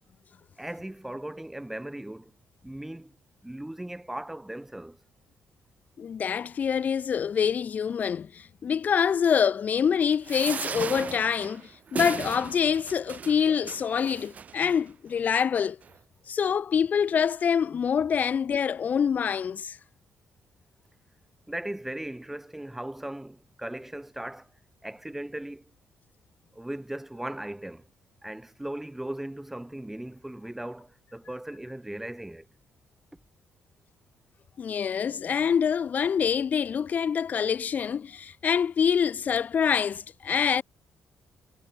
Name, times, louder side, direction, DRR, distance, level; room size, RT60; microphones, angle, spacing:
voice 1, 0.6-2.3 2.6-3.2 3.4-5.0 10.5-10.6 21.5-24.5 24.8-25.7 26.5-27.9 28.2-32.5, right 1 dB, 5° right, 1.5 m, -38 dB
voice 2, 6.0-8.3 8.6-11.6 11.9-15.8 16.3-19.7 34.6-40.6, left 7 dB, 45° left, 1.0 m, -25 dB
sound 1, 10.2-14.8 15.4-15.6 15.8-15.9, right 7 dB, 40° right, 0.6 m, -37 dB
cardioid pair, 120°, 4 cm